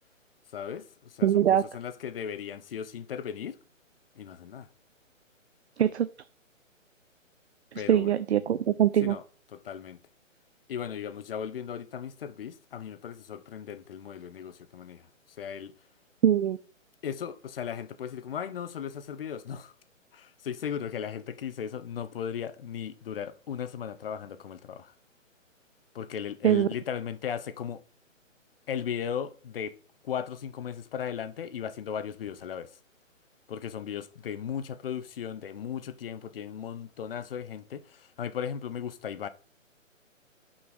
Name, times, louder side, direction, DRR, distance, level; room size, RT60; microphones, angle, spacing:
voice 1, 0.5-3.6 4.1-4.7 7.7-8.1 9.0-9.2 9.5-10.0 10.7-15.7 17.0-19.7 20.1-24.9 25.9-27.8 28.7-29.7 30.0-32.8 33.5-39.3, left 8 dB, 45° left, 0.8 m, -37 dB
voice 2, 1.2-1.6 5.8-6.1 7.7-9.2 16.2-16.6 26.4-26.7, right 10 dB, 55° right, 0.5 m, -23 dB
6.2 x 5.6 x 6.1 m
figure-of-eight pair, 140°, 40 cm